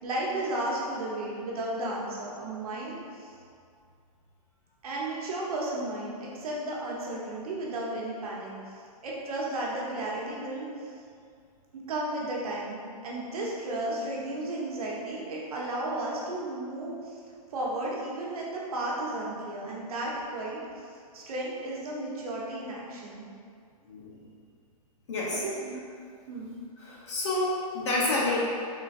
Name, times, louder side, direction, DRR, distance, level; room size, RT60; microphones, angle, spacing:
voice 1, 0.0-3.3 4.8-10.9 11.7-17.2 17.5-23.2 25.3-25.8 26.3-26.5, right 1 dB, 70° right, -4 dB, 1.0 m, -34 dB
voice 2, 23.9-24.3 25.1-25.4 26.8-28.4, left 2 dB, 45° left, -5 dB, 1.0 m, -29 dB
3.8 x 3.8 x 2.5 m, 2.3 s
hypercardioid pair, 170°, 20 cm